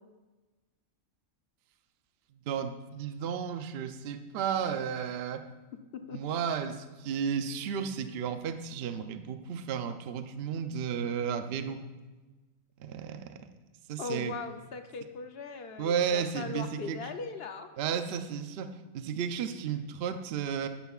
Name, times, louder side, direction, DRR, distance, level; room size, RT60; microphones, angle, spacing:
voice 1, 2.5-5.5 6.1-11.8 12.8-13.5 13.9-14.3 15.8-17.0 17.8-20.7, right 7 dB, 60° right, 9 dB, 0.7 m, -33 dB
voice 2, 14.0-17.7, left 4 dB, 55° left, 7 dB, 0.7 m, -39 dB
12.5 x 10.0 x 2.4 m, 1.2 s
omnidirectional pair, 1.4 m